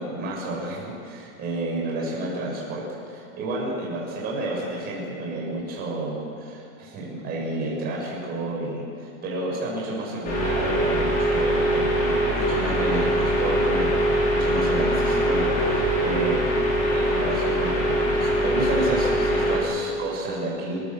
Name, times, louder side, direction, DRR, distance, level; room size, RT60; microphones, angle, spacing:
voice 1, 0.0-16.5 16.7-20.8, right 2 dB, 25° right, -4 dB, 7.2 m, -30 dB
sound 1, 10.2-19.6, equal, 20° left, 4.9 m, -22 dB
30.0 x 14.5 x 8.0 m, 2.5 s
supercardioid pair, 180°, 39 cm